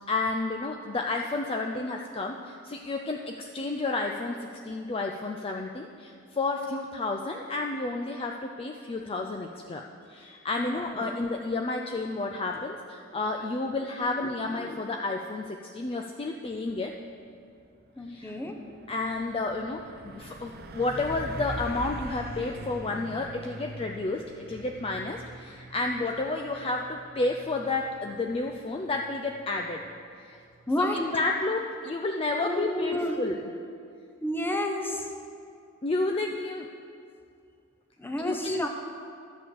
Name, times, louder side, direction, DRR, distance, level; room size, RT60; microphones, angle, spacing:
voice 1, 0.1-9.8 10.1-16.9 18.1-18.5 18.9-29.8 30.1-30.4 30.8-33.5 35.8-36.7 38.2-38.7, left 3 dB, 30° left, 2 dB, 0.4 m, -31 dB
voice 2, 10.3-11.1 18.0-18.6 30.7-31.0 32.3-33.2 34.2-35.1 38.0-38.7, left 1 dB, 10° left, 3 dB, 0.9 m, -30 dB
Truck, 17.5-17.7 18.1-30.7, right 2 dB, 50° right, 0.7 m, -43 dB
11.0 x 6.9 x 6.5 m, 2.4 s
head